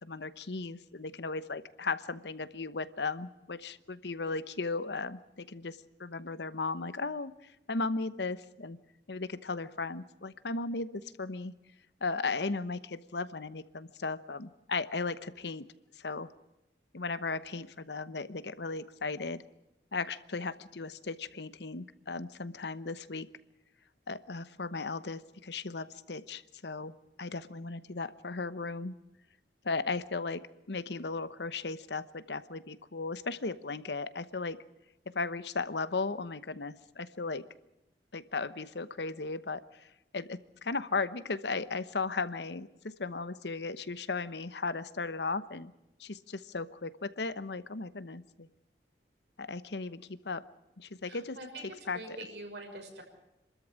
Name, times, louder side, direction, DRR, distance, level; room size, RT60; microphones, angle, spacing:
voice 1, 0.0-8.8 9.1-11.5 12.0-15.7 15.9-16.3 16.9-19.4 19.9-23.3 24.1-29.0 29.6-30.4 30.7-34.6 35.1-37.4 38.1-45.7 46.0-48.5 49.4-50.4 50.8-51.4 51.9-52.2, left 3 dB, 75° left, 15 dB, 1.0 m, -36 dB
voice 2, 51.0-51.6 51.9-53.0, right 1 dB, 80° right, 2 dB, 6.2 m, -44 dB
27.5 x 13.5 x 8.8 m, 0.93 s
head